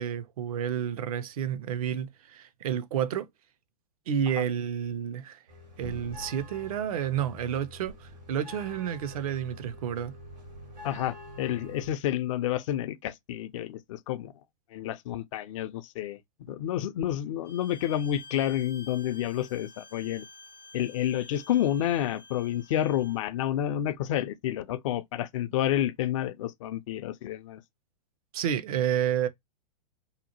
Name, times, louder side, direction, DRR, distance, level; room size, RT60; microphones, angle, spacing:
voice 1, 0.0-3.3 4.1-5.4 5.8-10.2 28.3-29.3, right 9 dB, 60° right, 0.4 m, -30 dB
sound 1, 5.5-11.9, left 1 dB, 90° right, 1.3 m, -45 dB
voice 2, 10.8-14.3 14.7-16.2 16.5-20.3 20.7-27.6, left 11 dB, 50° left, 0.4 m, -29 dB
Bowed string instrument, 17.4-23.2, left 3 dB, 85° left, 0.7 m, -50 dB
2.8 x 2.1 x 2.8 m
hypercardioid pair, 105°, 21 cm